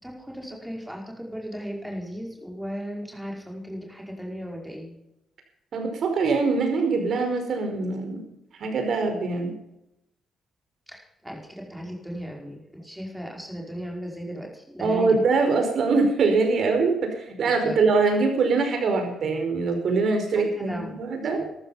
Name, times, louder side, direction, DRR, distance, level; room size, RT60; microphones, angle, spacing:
voice 1, 0.0-4.9 10.9-15.2 17.6-17.9 20.6-21.5, equal, 5° right, 0 dB, 5.2 m, -36 dB
voice 2, 5.7-8.2 8.6-9.5 14.8-21.4, right 4 dB, 60° right, 5 dB, 5.1 m, -23 dB
13.5 x 13.5 x 5.7 m, 0.86 s
cardioid pair, 90°, 0 cm